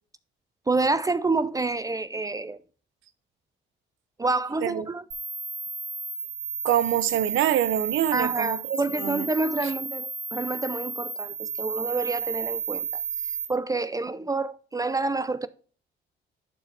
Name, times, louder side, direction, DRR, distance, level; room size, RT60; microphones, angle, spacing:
voice 1, 0.7-2.6 4.2-5.0 8.1-13.0 13.5-15.5, right 3 dB, 15° right, 0.4 m, -28 dB
sound 1, 5.1-13.5, right 5 dB, 60° right, 2.6 m, -32 dB
voice 2, 6.6-9.3 9.6-9.7, right 11 dB, 85° right, 0.7 m, -26 dB
11.0 x 4.7 x 3.2 m
cardioid pair, 90°, 20 cm